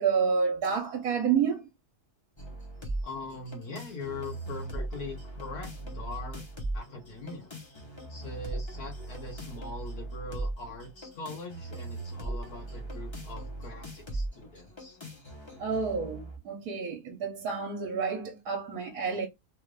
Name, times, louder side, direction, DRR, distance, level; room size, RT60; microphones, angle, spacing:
voice 1, 0.0-1.7 15.6-19.3, right 6 dB, 65° right, 1.3 m, -29 dB
sound 1, 2.4-16.4, right 2 dB, 20° left, 0.8 m, -39 dB
voice 2, 3.0-6.4 6.7-7.5 8.1-15.0, left 3 dB, 70° left, 1.5 m, -42 dB
3.5 x 2.5 x 3.2 m
omnidirectional pair, 1.7 m